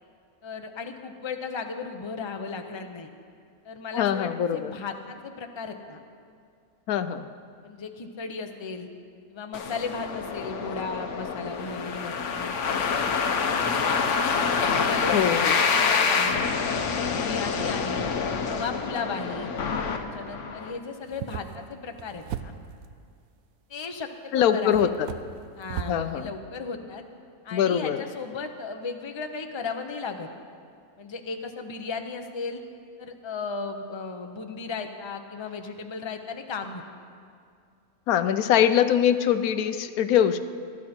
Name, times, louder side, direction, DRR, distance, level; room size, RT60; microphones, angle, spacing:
voice 1, 0.4-3.1 3.6-6.0 7.6-8.9 9.3-13.9 14.7-16.5 17.0-18.1 18.5-19.5 20.0-22.5 23.7-24.9 25.5-27.0 27.4-30.3 31.0-32.6 33.0-36.8, left 4 dB, 25° left, 5 dB, 0.7 m, -36 dB
voice 2, 3.9-4.7 6.9-7.3 15.1-15.6 24.3-25.1 25.9-26.3 27.5-28.0 38.1-40.4, left 9 dB, 85° left, 11 dB, 1.1 m, -23 dB
sound 1, 9.5-20.7, left 5 dB, 60° left, 1.2 m, -26 dB
sound 2, 21.0-22.9 23.9-24.0 24.7-26.0, right 10 dB, 75° right, 1.1 m, -37 dB
20.5 x 13.0 x 4.4 m, 2.3 s
omnidirectional pair, 1.5 m